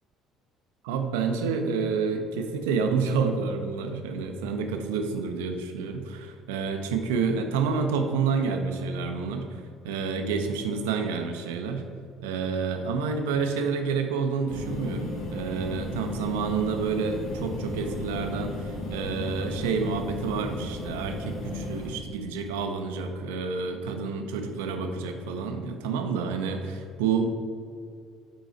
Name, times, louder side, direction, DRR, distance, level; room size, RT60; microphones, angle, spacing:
voice 1, 0.8-11.9 12.2-27.3, right 5 dB, 70° right, 6 dB, 0.5 m, -29 dB
sound 1, 14.5-21.9, left 2 dB, 60° left, 1.4 m, -35 dB
5.6 x 4.7 x 4.3 m, 2.3 s
figure-of-eight pair, 50°, 0 cm